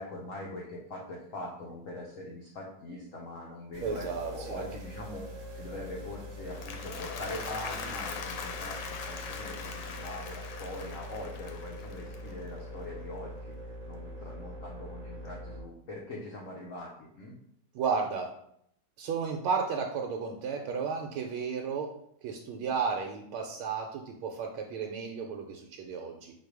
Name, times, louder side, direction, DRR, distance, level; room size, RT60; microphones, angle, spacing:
voice 1, 0.0-5.2 5.5-13.5 13.8-17.4 20.9-21.1, left 1 dB, 90° left, -2 dB, 0.7 m, -42 dB
sound 1, 3.7-15.6, equal, 50° right, 1.0 m, -43 dB
voice 2, 3.8-4.7 17.7-18.3 19.0-21.9 22.2-26.3, right 5 dB, 85° right, 1 dB, 1.5 m, -33 dB
Applause, 6.3-12.7, left 5 dB, 70° left, 1.0 m, -41 dB
4.3 x 2.6 x 4.7 m, 0.71 s
omnidirectional pair, 2.3 m